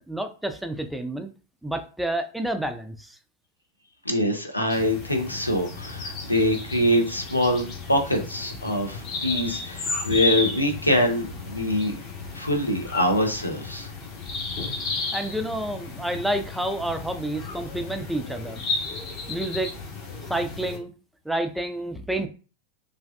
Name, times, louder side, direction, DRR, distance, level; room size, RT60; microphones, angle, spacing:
voice 1, 0.1-1.3 1.6-3.2 15.1-18.6 19.3-19.7 20.3-20.9 21.3-22.3, right 1 dB, 5° right, 7 dB, 0.4 m, -29 dB
voice 2, 4.1-11.9 12.3-13.9, left 1 dB, 85° left, 3 dB, 0.6 m, -24 dB
sound 1, 4.7-20.8, left 3 dB, 40° left, 1.0 m, -33 dB
3.3 x 2.5 x 2.3 m, 0.36 s
figure-of-eight pair, 90°, 0 cm